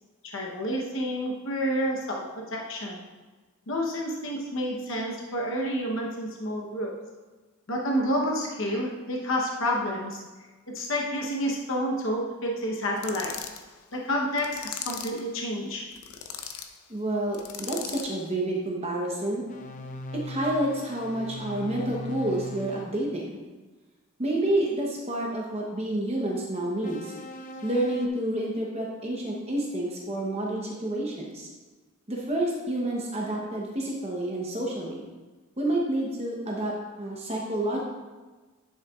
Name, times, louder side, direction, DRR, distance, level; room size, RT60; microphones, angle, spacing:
voice 1, 0.2-3.1 3.7-7.0 7.7-10.2 10.7-13.4 13.9-15.9, equal, 60° left, -1 dB, 0.9 m, -29 dB
sound 1, 13.0-13.6 14.4-15.2 15.9-16.7 17.3-18.2, left 8 dB, 85° left, 0.6 m, -38 dB
voice 2, 16.9-19.4 20.1-23.4 24.2-27.1 27.6-31.5 32.1-35.0 35.6-37.8, right 1 dB, 30° right, -2 dB, 0.9 m, -29 dB
sound 2, 19.5-23.0 26.8-28.1, left 1 dB, 35° left, 0.4 m, -39 dB
10.5 x 6.4 x 2.4 m, 1.3 s
head